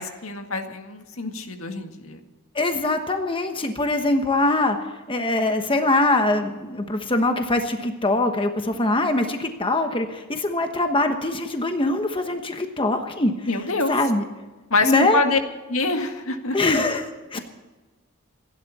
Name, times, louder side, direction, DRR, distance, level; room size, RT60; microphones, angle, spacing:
voice 1, 0.0-2.2 13.5-13.9 14.7-15.4 15.7-16.6, left 3 dB, 75° left, 5 dB, 1.9 m, -25 dB
voice 2, 2.5-4.8 5.1-13.3 13.9-14.2 14.8-15.2 16.5-17.4, left 2 dB, 25° left, 6 dB, 1.2 m, -22 dB
28.0 x 11.5 x 4.2 m, 1.2 s
head